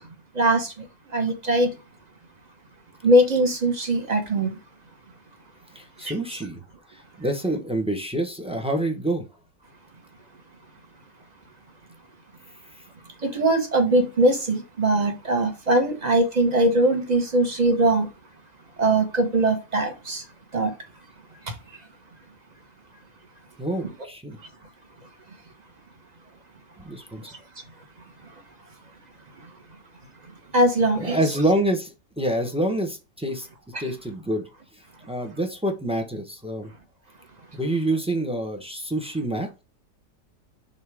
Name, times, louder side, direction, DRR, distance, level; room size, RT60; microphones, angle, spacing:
voice 1, 0.3-0.7 1.1-1.7 3.0-4.6 13.2-18.1 18.8-20.2 20.5-20.7 30.5-31.2 33.7-33.8, right 1 dB, 25° right, 1.1 m, -21 dB
voice 2, 5.7-6.6 6.9-9.2 23.6-24.4 26.8-27.2 31.0-33.5 33.8-34.4 35.0-36.7 37.5-39.6, right 1 dB, 5° right, 0.6 m, -27 dB
5.5 x 3.8 x 4.9 m
omnidirectional pair, 1.9 m